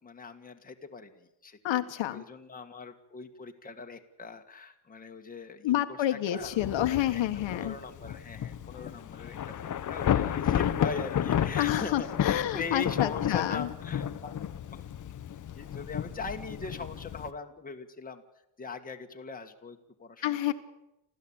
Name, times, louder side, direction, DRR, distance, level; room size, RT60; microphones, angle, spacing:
voice 1, 0.0-1.6 2.1-7.2 7.5-14.4 14.7-14.9 15.6-18.2 18.6-20.4, left 4 dB, 15° left, 4 dB, 1.8 m, -41 dB
voice 2, 1.6-2.2 5.6-7.7 11.6-13.7 20.2-20.5, left 13 dB, 70° left, 7 dB, 1.6 m, -29 dB
Thunder / Rain, 6.4-17.3, left 9 dB, 40° left, 1.0 m, -32 dB
28.5 x 14.5 x 8.9 m, 0.88 s
cardioid pair, 155°, 48 cm